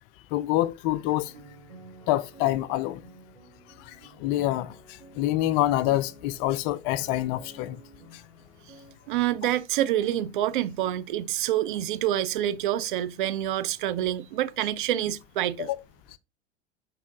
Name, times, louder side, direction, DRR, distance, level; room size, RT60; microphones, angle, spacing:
voice 1, 0.3-1.3 2.1-3.0 3.8-7.8 8.1-8.2 15.6-15.8, left 15 dB, 30° left, 0.4 m, -26 dB
sound 1, 1.1-8.9, right 2 dB, 70° right, 2.4 m, -51 dB
voice 2, 9.1-15.7, right 12 dB, 45° right, 0.5 m, -27 dB
6.2 x 4.7 x 3.7 m
figure-of-eight pair, 90°, 34 cm